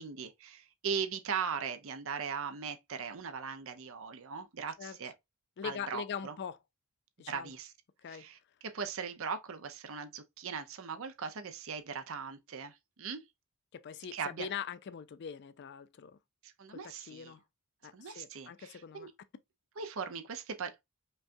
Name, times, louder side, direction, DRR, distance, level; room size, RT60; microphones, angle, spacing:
voice 1, 0.0-5.1 5.6-6.3 7.3-7.7 8.1-8.4 8.7-13.2 14.1-14.5 16.4-17.3 17.9-19.1 19.8-20.8, right 6 dB, 65° right, 0.6 m, -39 dB
voice 2, 5.6-6.6 7.2-7.5 8.0-8.3 13.7-16.2 16.7-17.4 17.8-19.1, left 7 dB, 50° left, 0.4 m, -42 dB
5.3 x 2.3 x 2.6 m
head